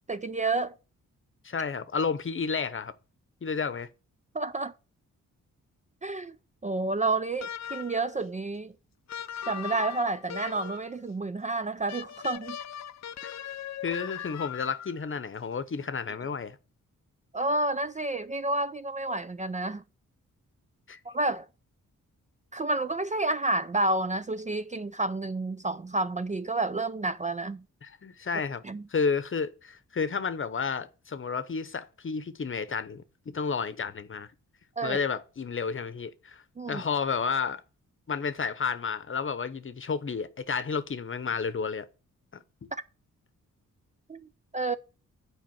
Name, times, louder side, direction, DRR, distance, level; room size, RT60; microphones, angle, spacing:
voice 1, 0.1-0.7 4.3-4.7 6.0-6.3 6.6-8.7 9.5-12.6 17.3-19.8 21.1-21.5 22.5-27.6 28.6-28.8 34.8-35.0 36.6-36.8 44.1-44.2 44.5-44.8, right 2 dB, 25° right, 0.4 m, -30 dB
voice 2, 1.4-2.9 3.4-3.9 13.8-16.6 20.9-21.0 27.8-28.6 28.9-34.3 34.8-36.4 36.7-37.6 38.1-41.9 42.3-42.7, left 5 dB, 40° left, 0.9 m, -31 dB
sound 1, 7.4-8.1 9.1-10.9 11.9-15.1, left 9 dB, 55° left, 0.5 m, -39 dB
7.7 x 5.0 x 7.0 m
cardioid pair, 85°, 32 cm